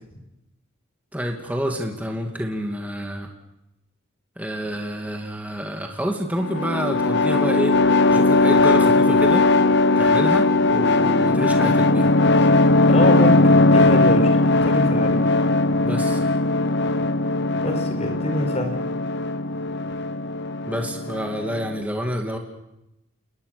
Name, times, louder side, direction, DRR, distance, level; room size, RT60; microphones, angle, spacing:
voice 1, 1.1-3.3 4.4-7.8 8.1-9.5 10.0-12.1 15.8-16.2 20.7-22.4, equal, 5° right, 2 dB, 2.5 m, -28 dB
sound 1, 6.4-21.8, left 2 dB, 55° left, 0.9 m, -18 dB
voice 2, 12.9-15.2 17.6-18.8, left 1 dB, 30° left, 5 dB, 5.3 m, -26 dB
28.5 x 21.0 x 6.9 m, 0.90 s
head